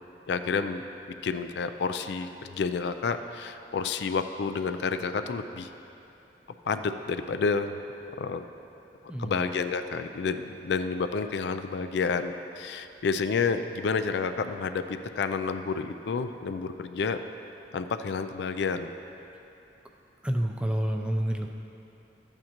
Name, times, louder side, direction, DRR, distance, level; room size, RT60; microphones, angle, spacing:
voice 1, 0.3-0.8 1.2-5.7 6.6-7.8 8.2-8.5 9.2-17.2 17.7-18.9, left 5 dB, 65° left, 9 dB, 0.4 m, -30 dB
voice 2, 9.1-9.4 20.2-21.5, right 1 dB, 5° right, 3 dB, 0.4 m, -29 dB
12.5 x 8.9 x 2.9 m, 2.9 s
head